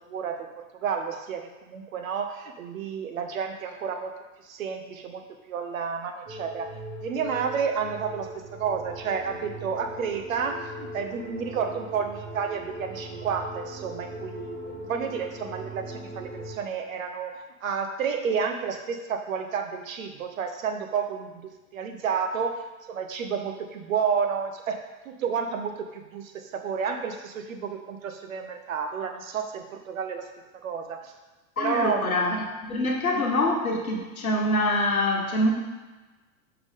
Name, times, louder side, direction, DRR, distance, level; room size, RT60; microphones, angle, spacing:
voice 1, 0.0-4.1 4.4-5.2 5.5-6.7 7.0-22.6 22.9-24.8 25.0-30.3 30.5-31.1 31.6-32.3, right 6 dB, 70° right, 5 dB, 0.9 m, -31 dB
sound 1, 6.3-16.6, equal, 25° right, 2.0 m, -40 dB
voice 2, 31.6-35.5, left 1 dB, 80° left, 1 dB, 1.3 m, -25 dB
5.9 x 5.6 x 3.6 m, 1.2 s
figure-of-eight pair, 90°, 42 cm